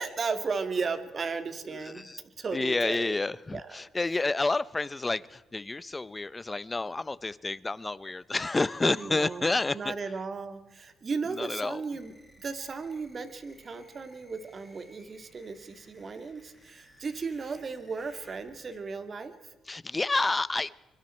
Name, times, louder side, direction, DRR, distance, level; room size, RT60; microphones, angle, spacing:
voice 1, 0.0-3.2 3.5-3.8 8.9-12.1 12.4-19.5, right 4 dB, 40° right, 9 dB, 2.4 m, -35 dB
voice 2, 2.5-9.9 11.4-11.8 19.7-20.7, left 3 dB, 20° left, 18 dB, 0.8 m, -29 dB
sound 1, 11.9-18.8, equal, 10° right, 7.0 m, -59 dB
25.0 x 24.0 x 4.5 m, 1.1 s
cardioid pair, 90°, 0 cm